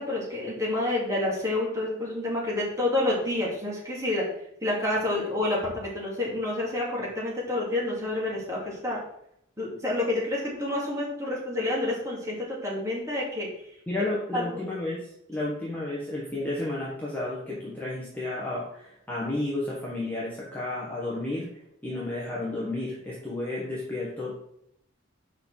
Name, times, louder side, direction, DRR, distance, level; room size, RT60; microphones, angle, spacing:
voice 1, 0.0-4.3 4.6-9.0 9.6-13.5 14.3-14.5, left 2 dB, 15° right, -5 dB, 2.5 m, -28 dB
voice 2, 13.9-21.5 21.8-24.4, left 2 dB, 10° left, -7 dB, 1.4 m, -32 dB
5.7 x 4.8 x 6.3 m, 0.75 s
head